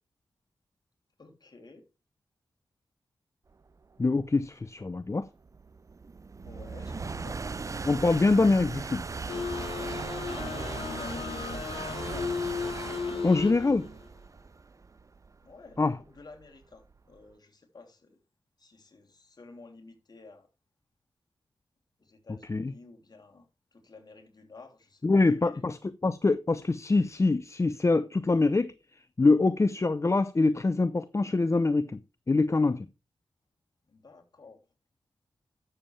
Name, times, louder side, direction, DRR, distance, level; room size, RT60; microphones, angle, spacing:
voice 1, 1.2-1.8 6.4-7.4 10.5-12.4 15.4-18.2 18.6-20.5 22.0-23.5 23.7-25.6 33.9-34.6, left 3 dB, 50° left, 3.1 m, -51 dB
sound 1, 3.8-17.2, right 4 dB, 35° right, 0.4 m, -39 dB
voice 2, 4.0-5.3 7.8-9.0 13.2-13.9 15.8-16.0 22.5-22.7 25.0-28.7 29.2-32.0 32.3-32.9, left 3 dB, 35° left, 0.6 m, -24 dB
sound 2, 6.4-14.0, right 4 dB, 80° right, 1.6 m, -47 dB
sound 3, 9.3-13.9, left 5 dB, 80° left, 1.5 m, -35 dB
12.0 x 7.2 x 3.3 m
cardioid pair, 45°, 9 cm